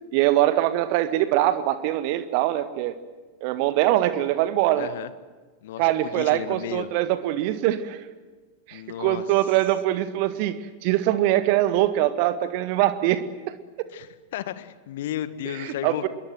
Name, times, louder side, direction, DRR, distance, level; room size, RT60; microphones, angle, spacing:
voice 1, 0.1-3.0 3.4-4.9 5.8-8.0 8.7-13.9 15.5-16.1, right 14 dB, 45° right, 12 dB, 1.7 m, -23 dB
voice 2, 4.8-5.1 5.6-6.9 8.7-9.2 13.9-14.1 14.3-16.1, left 11 dB, 55° left, 14 dB, 1.7 m, -33 dB
27.5 x 22.5 x 7.9 m, 1.3 s
figure-of-eight pair, 90°, 0 cm